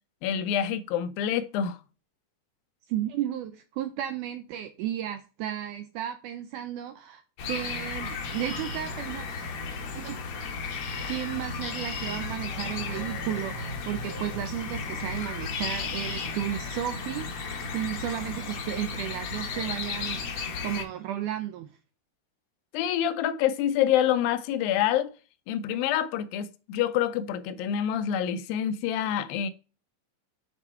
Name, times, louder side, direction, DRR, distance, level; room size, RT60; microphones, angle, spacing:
voice 1, 0.2-1.8 22.7-25.1 25.5-29.5, left 10 dB, 80° left, 2.4 m, -27 dB
voice 2, 2.9-9.3 9.9-10.2 11.1-21.7, right 11 dB, 80° right, 1.8 m, -34 dB
sound 1, 7.4-20.8, left 4 dB, 65° left, 1.3 m, -34 dB
8.1 x 4.0 x 4.3 m
omnidirectional pair, 4.1 m